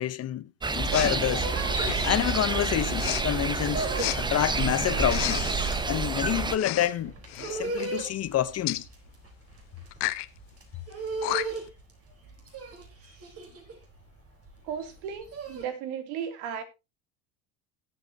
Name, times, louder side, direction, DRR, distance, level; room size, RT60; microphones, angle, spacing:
voice 1, 0.0-1.5 2.0-3.9 4.2-5.5 5.9-7.1 7.5-8.8, left 11 dB, 35° left, 0.9 m, -28 dB
sound 1, 0.6-6.6, right 4 dB, 10° right, 0.8 m, -28 dB
Respiratory sounds, 0.9-1.2 1.8-2.2 3.0-3.2 4.0-4.2 5.0-5.7 6.5-6.9 7.2-7.5 8.7-8.8 9.9-10.3 10.9-11.0 11.2-11.7, left 19 dB, 65° left, 1.1 m, -32 dB
sound 2, 0.9-3.0 3.3-15.7, right 3 dB, 35° right, 4.0 m, -37 dB
voice 2, 14.6-16.6, right 8 dB, 75° right, 2.8 m, -35 dB
19.5 x 8.0 x 2.8 m
cardioid pair, 130°, 42 cm